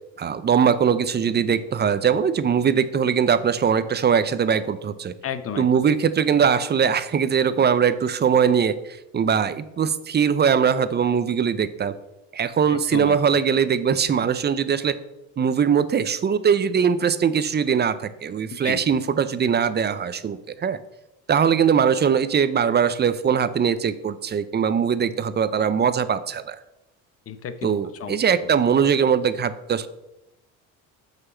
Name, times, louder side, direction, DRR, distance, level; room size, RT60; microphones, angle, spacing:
voice 1, 0.2-5.1 5.6-11.9 12.3-15.0 15.4-20.8 21.3-26.6 27.6-29.9, right 7 dB, 30° right, 14 dB, 0.6 m, -21 dB
voice 2, 5.2-5.7 12.7-13.2 18.6-18.9 27.3-27.7 28.0-28.2, left 8 dB, 40° left, 11 dB, 0.9 m, -32 dB
6.4 x 5.8 x 6.1 m, 0.92 s
supercardioid pair, 95°, 36 cm